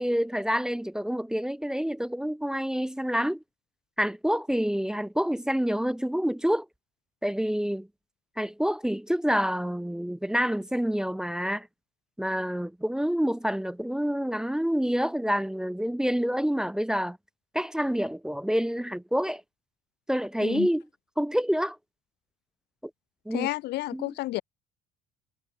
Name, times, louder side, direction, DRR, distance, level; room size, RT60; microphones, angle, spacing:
voice 1, 0.0-3.4 4.0-6.7 7.2-7.9 8.4-11.7 12.2-17.2 17.5-19.4 20.1-20.8 21.2-21.8 23.3-23.5 23.9-24.1, equal, 5° right, 0.3 m, -27 dB
voice 2, 23.3-24.4, left 17 dB, 65° left, 1.0 m, -31 dB
supercardioid pair, 85°, 18 cm